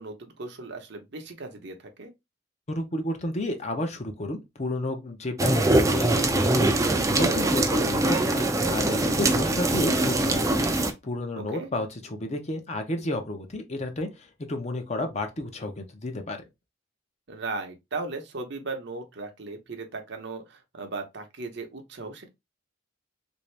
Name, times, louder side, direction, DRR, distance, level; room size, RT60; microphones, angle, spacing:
voice 1, 0.0-2.1 11.3-11.7 17.3-22.3, right 3 dB, 60° right, 0.8 m, -37 dB
voice 2, 2.7-16.4, left 1 dB, 35° left, 0.7 m, -32 dB
sound 1, 5.4-10.9, right 2 dB, 15° right, 0.5 m, -23 dB
3.5 x 2.7 x 3.2 m
head